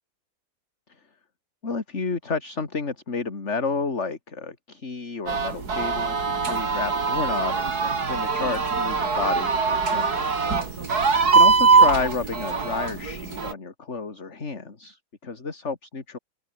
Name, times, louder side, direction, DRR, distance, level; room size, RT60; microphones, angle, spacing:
voice 1, 1.6-10.3 11.3-16.2, left 4 dB, 35° left, 2.8 m, -31 dB
sound 1, 5.3-13.5, right 4 dB, 55° right, 3.3 m, -22 dB
open air
omnidirectional pair, 2.0 m